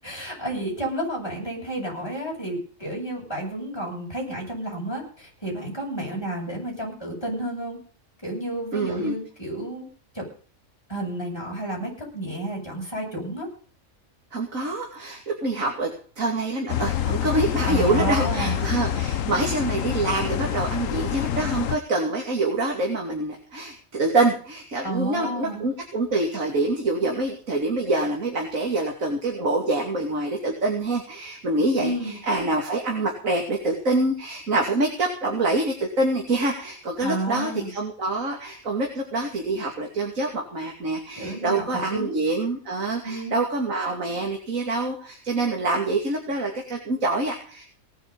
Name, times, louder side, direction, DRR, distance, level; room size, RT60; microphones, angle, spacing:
voice 1, 0.0-7.8 8.2-9.9 10.1-10.2 10.9-13.5 17.6-18.6 19.4-19.5 24.8-25.7 31.8-32.2 37.0-37.7 41.2-42.2 43.0-43.4, right 1 dB, 20° left, -2 dB, 7.9 m, -31 dB
voice 2, 8.7-9.1 14.3-15.9 16.2-47.6, right 2 dB, 70° right, 1 dB, 3.1 m, -26 dB
sound 1, 16.7-21.8, left 10 dB, 70° left, 1.2 m, -26 dB
18.5 x 9.9 x 5.5 m, 0.42 s
omnidirectional pair, 1.4 m